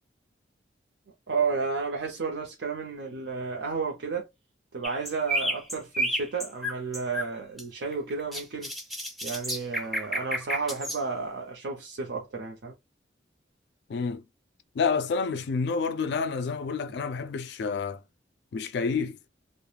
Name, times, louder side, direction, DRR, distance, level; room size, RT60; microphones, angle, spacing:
voice 1, 1.3-4.2 4.7-8.7 9.2-12.7, right 4 dB, 85° right, 0.6 m, -32 dB
sound 1, 4.8-7.3 7.6-11.0, equal, ahead, 0.4 m, -31 dB
voice 2, 13.9-14.2 14.8-18.0 18.5-19.2, left 5 dB, 65° left, 0.3 m, -29 dB
2.3 x 2.1 x 3.2 m
head